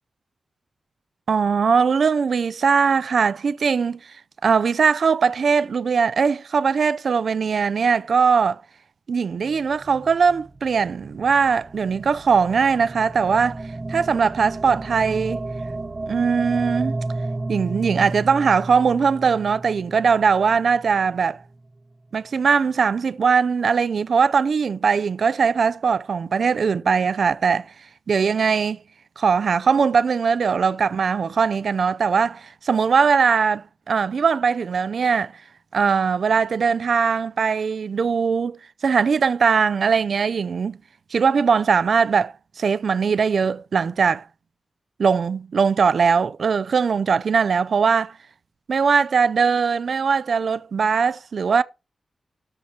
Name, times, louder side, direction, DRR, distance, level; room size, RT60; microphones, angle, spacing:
voice 1, 1.3-4.0 4.4-8.6 9.1-13.6 13.9-15.4 16.1-17.0 17.5-21.4 22.1-27.7 28.1-28.8 29.2-35.3 35.7-40.8 41.1-44.2 45.0-48.1 48.7-51.6, right 5 dB, 60° right, 0.4 m, -20 dB
sound 1, 9.3-21.6, right 2 dB, 25° right, 0.7 m, -33 dB
13.0 x 4.3 x 7.5 m
wide cardioid pair, 160°, 0 cm